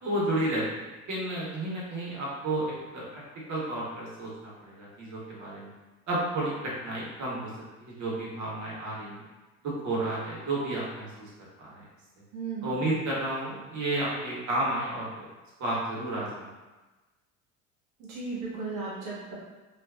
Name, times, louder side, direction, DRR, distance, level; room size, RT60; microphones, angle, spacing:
voice 1, 0.0-0.8 1.1-3.2 3.5-4.3 4.6-5.7 6.1-6.5 6.8-7.5 7.8-9.2 9.6-11.3 11.6-11.8 12.6-15.3 15.6-16.5, right 1 dB, 45° right, -5 dB, 1.2 m, -31 dB
voice 2, 12.3-12.8 18.1-19.3, right 4 dB, 75° right, -5 dB, 1.0 m, -35 dB
2.5 x 2.4 x 2.3 m, 1.2 s
hypercardioid pair, 70°, 42 cm